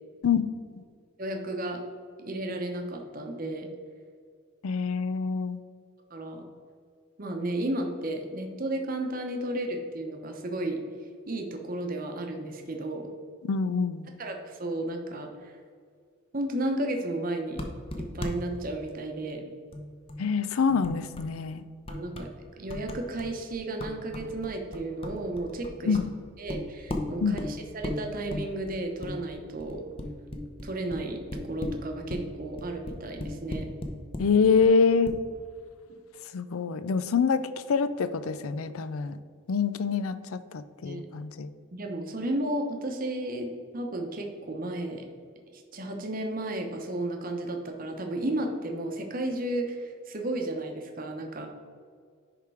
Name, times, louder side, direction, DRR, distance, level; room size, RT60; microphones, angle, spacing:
voice 1, 1.2-1.8 2.2-3.7 6.1-6.4 7.2-10.8 11.3-13.0 14.2-15.6 16.3-17.6 18.0-19.4 21.9-22.3 22.6-26.0 26.4-29.8 30.6-33.7 40.8-41.1 41.7-45.1 45.5-51.5, right 1 dB, 40° right, 3 dB, 0.8 m, -33 dB
voice 2, 4.6-5.6 13.4-14.1 20.2-21.6 25.8-26.0 27.2-27.4 34.2-35.2 36.3-39.2 39.5-41.5, left 5 dB, 80° left, 13 dB, 0.4 m, -25 dB
sound 1, 17.6-18.3 18.6-18.7 18.9-19.0 19.7-20.4 20.7-21.4 21.8-22.3 22.7-34.3 34.6-34.7 35.1-35.2, left 1 dB, 25° left, 0.7 m, -37 dB
10.5 x 3.6 x 4.7 m, 2.1 s
head